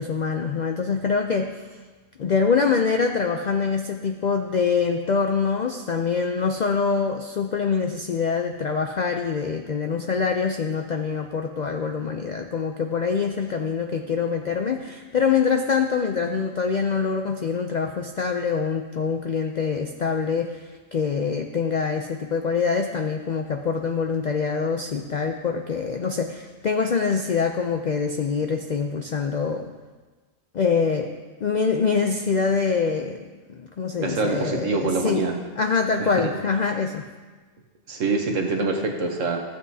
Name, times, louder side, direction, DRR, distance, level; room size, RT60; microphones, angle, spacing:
voice 1, 0.0-1.5 2.2-20.6 20.9-29.7 30.5-31.1 31.4-33.2 33.5-35.2 35.6-37.0, left 5 dB, 80° left, 4 dB, 0.4 m, -24 dB
voice 2, 34.0-35.4 36.0-36.3 37.9-39.4, right 3 dB, 70° right, 2 dB, 1.3 m, -25 dB
14.5 x 7.8 x 2.7 m, 1.3 s
omnidirectional pair, 1.4 m